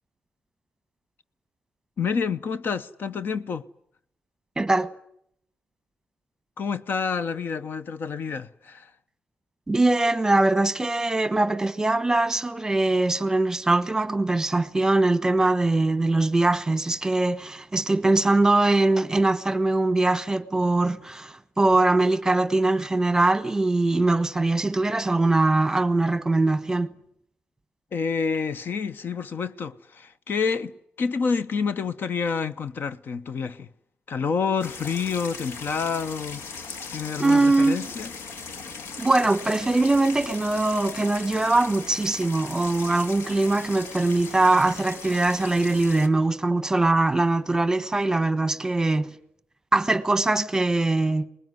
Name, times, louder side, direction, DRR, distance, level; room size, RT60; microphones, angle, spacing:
voice 1, 2.0-3.6 6.6-8.9 27.9-33.7 34.1-36.4 36.9-38.1, left 5 dB, 60° left, 0.9 m, -28 dB
voice 2, 4.6-4.9 9.7-26.9 37.2-37.9 39.0-49.1 49.7-51.3, right 2 dB, 15° right, 1.2 m, -22 dB
sound 1, 34.6-46.1, left 5 dB, 85° left, 1.8 m, -38 dB
24.5 x 20.5 x 9.6 m
cardioid pair, 110°, 4 cm